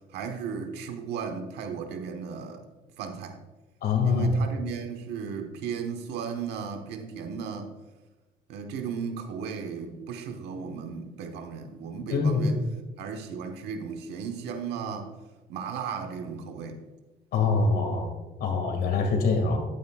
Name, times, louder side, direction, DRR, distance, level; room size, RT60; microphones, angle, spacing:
voice 1, 0.1-2.6 3.0-3.4 4.0-7.7 8.5-12.6 13.0-15.1 15.5-16.8, right 6 dB, 85° right, 5 dB, 1.2 m, -35 dB
voice 2, 3.8-4.3 12.1-12.5 17.3-18.1 18.4-19.6, left 4 dB, 65° left, 4 dB, 2.1 m, -24 dB
11.0 x 9.1 x 2.4 m, 1.2 s
cardioid pair, 110°, 17 cm